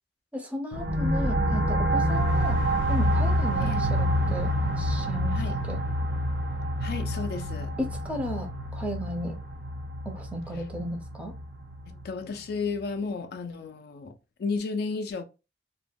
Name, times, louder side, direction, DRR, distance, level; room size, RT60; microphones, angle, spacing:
voice 1, 0.3-2.6 2.9-5.8 7.8-9.4 10.1-11.4, equal, 10° right, 0.5 m, -35 dB
sound 1, 0.7-12.0, equal, 75° right, 0.7 m, -27 dB
voice 2, 6.8-7.7 11.9-15.2, left 4 dB, 60° left, 0.4 m, -33 dB
2.3 x 2.1 x 3.3 m
head